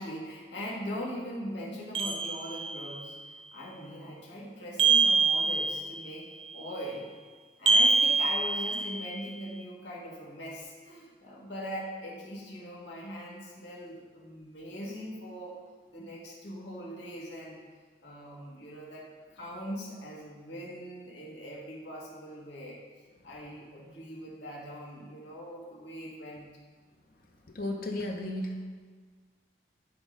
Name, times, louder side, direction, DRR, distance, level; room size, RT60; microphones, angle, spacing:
voice 1, 0.0-7.1 7.6-15.6 15.9-17.6 18.0-22.8 23.2-26.5, equal, 90° left, -4 dB, 1.8 m, -41 dB
sound 1, 1.9-3.0 4.8-6.1 7.7-9.2, right 4 dB, 30° right, 0.5 m, -25 dB
voice 2, 27.5-28.6, left 1 dB, 55° left, 2 dB, 0.8 m, -33 dB
10.0 x 3.6 x 5.2 m, 1.5 s
head